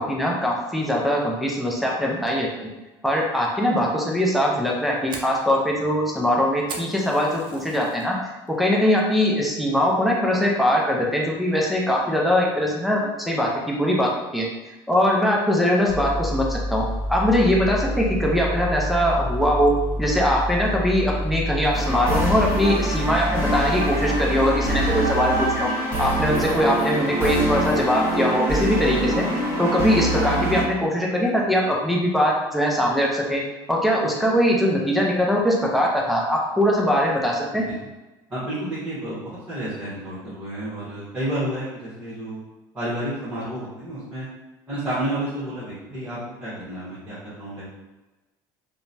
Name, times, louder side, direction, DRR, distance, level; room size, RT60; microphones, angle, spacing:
voice 1, 0.0-2.5 3.0-8.1 8.6-14.5 14.9-16.8 17.1-19.7 20.0-25.7 26.0-29.3 29.6-33.4 33.7-37.6, equal, ahead, -3 dB, 0.5 m, -21 dB
Fire, 4.5-8.1 8.5-8.9 9.2-9.4 9.9-10.2, right 4 dB, 50° right, 0.5 m, -39 dB
sound 1, 15.9-24.9, equal, 85° left, 0.4 m, -28 dB
sound 2, 21.7-30.6, right 1 dB, 25° left, 1.4 m, -25 dB
voice 2, 38.3-42.4 42.7-44.2 44.7-47.7, right 1 dB, 15° right, -10 dB, 1.2 m, -30 dB
2.8 x 2.2 x 2.6 m, 1.1 s
supercardioid pair, 100°, 11 cm